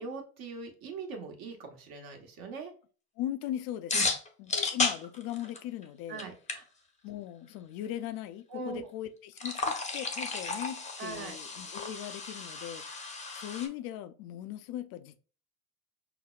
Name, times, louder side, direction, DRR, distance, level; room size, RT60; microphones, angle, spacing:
voice 1, 0.0-2.7 3.9-4.1 6.1-6.6 8.5-8.9 11.0-11.4, right 4 dB, 50° right, 1.2 m, -41 dB
voice 2, 3.2-3.9 4.4-6.2 7.0-13.0 13.3-15.2, left 12 dB, 50° left, 0.5 m, -39 dB
sound 1, 3.9-5.8 6.2-6.3 6.5-6.6 9.3-13.7, left 3 dB, 15° left, 0.7 m, -33 dB
5.7 x 2.0 x 2.3 m
hypercardioid pair, 85°, 47 cm